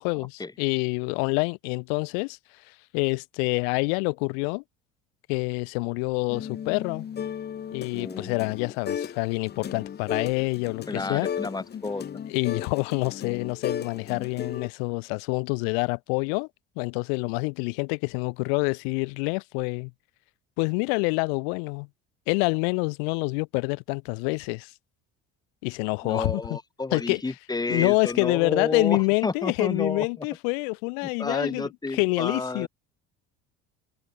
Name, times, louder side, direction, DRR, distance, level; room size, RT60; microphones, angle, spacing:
voice 1, 0.0-2.4 2.9-4.6 5.3-7.1 7.7-11.3 12.3-16.5 16.8-19.9 20.6-21.9 22.3-24.7 25.6-26.6 26.9-27.2 27.7-32.7, left 38 dB, 90° left, 2.0 m, -27 dB
sound 1, 6.3-9.2 9.5-14.7, left 8 dB, 35° left, 1.7 m, -35 dB
voice 2, 7.9-8.5 10.9-12.0 26.0-30.3 31.0-32.7, left 3 dB, 15° left, 2.7 m, -31 dB
open air
cardioid pair, 110°, 29 cm